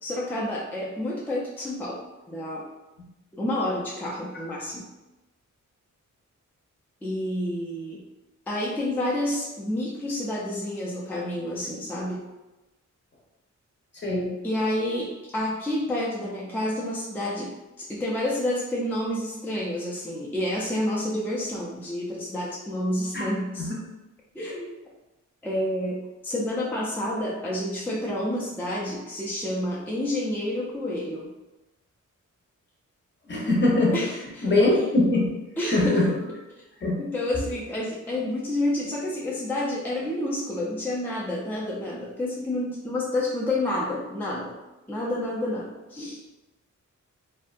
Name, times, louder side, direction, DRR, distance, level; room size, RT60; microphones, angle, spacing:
voice 1, 0.0-2.0 2.3-2.7 3.3-4.8 7.0-8.0 8.5-12.2 14.4-23.7 24.3-24.7 25.4-31.3 33.9-34.6 35.6-36.0 37.0-44.6 44.9-46.2, left 1 dB, 5° left, -6 dB, 0.4 m, -29 dB
voice 2, 33.3-34.0 34.4-35.3 35.7-36.1 36.8-36.9, left 2 dB, 35° left, -3 dB, 0.7 m, -22 dB
2.6 x 2.2 x 2.4 m, 1.0 s
wide cardioid pair, 95°, 31 cm